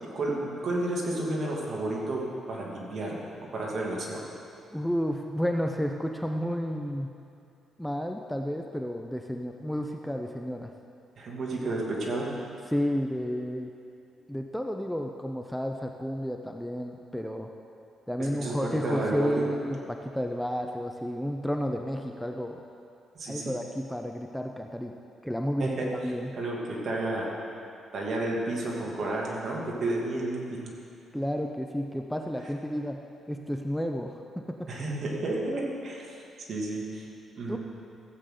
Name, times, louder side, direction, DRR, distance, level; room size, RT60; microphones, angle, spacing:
voice 1, 0.1-2.2 2.5-3.1 3.5-4.2 11.2-12.3 18.2-19.5 23.1-23.6 25.6-25.9 26.3-27.3 27.9-30.7 34.7-36.2 36.5-37.1 37.4-37.6, right 2 dB, 50° right, -3 dB, 2.4 m, -31 dB
voice 2, 4.7-7.1 7.8-10.7 12.7-13.7 14.3-17.5 18.1-22.6 23.3-25.0 25.2-26.3 31.1-33.0 33.3-34.2 37.5-37.6, equal, 5° left, 3 dB, 0.5 m, -31 dB
15.0 x 8.3 x 3.8 m, 2.6 s
cardioid pair, 90°, 0 cm